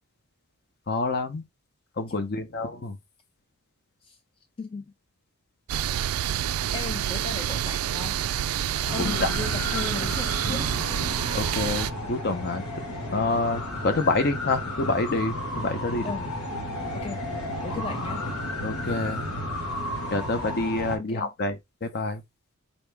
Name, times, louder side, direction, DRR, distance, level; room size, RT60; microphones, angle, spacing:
voice 1, 0.9-1.4 2.0-3.0 9.0-9.3 11.3-12.6 13.1-16.1 18.6-19.2 20.1-22.2, left 3 dB, 50° left, 0.7 m, -27 dB
voice 2, 4.6-4.9 5.9-6.1 6.7-8.2 8.9-10.7 16.0-16.3 16.9-17.2 17.6-18.3 21.0-21.3, left 4 dB, 25° left, 0.3 m, -36 dB
sound 1, 5.7-11.9, right 10 dB, 85° right, 0.3 m, -28 dB
sound 2, 8.9-21.0, left 1 dB, 80° left, 1.5 m, -33 dB
4.2 x 2.8 x 3.4 m
head